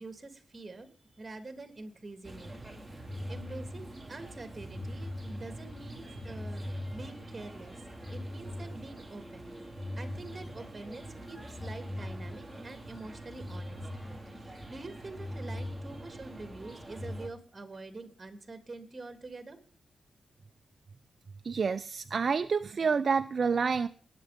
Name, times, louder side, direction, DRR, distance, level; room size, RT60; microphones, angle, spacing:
voice 1, 0.0-2.5 3.3-7.8 8.1-9.6 10.0-13.8 14.3-19.6, right 3 dB, 30° right, 7 dB, 2.9 m, -46 dB
sound 1, 2.2-17.3, equal, 5° right, 4.1 m, -42 dB
voice 2, 21.4-23.9, right 5 dB, 50° right, 10 dB, 0.6 m, -28 dB
20.0 x 8.9 x 5.2 m, 0.42 s
wide cardioid pair, 105°, 0 cm